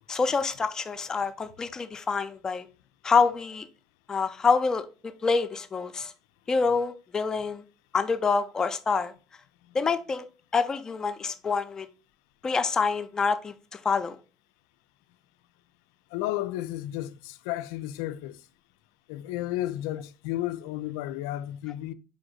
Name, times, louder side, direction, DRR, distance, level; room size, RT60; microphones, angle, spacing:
voice 1, 0.1-2.6 3.0-3.7 4.1-4.8 5.2-6.1 6.5-7.6 7.9-9.1 9.7-10.2 10.5-11.9 12.4-14.2, left 5 dB, 30° left, 0.6 m, -26 dB
voice 2, 16.1-18.4 19.1-21.9, left 14 dB, 85° left, 0.3 m, -33 dB
5.0 x 2.6 x 3.8 m
supercardioid pair, 80°, 2 cm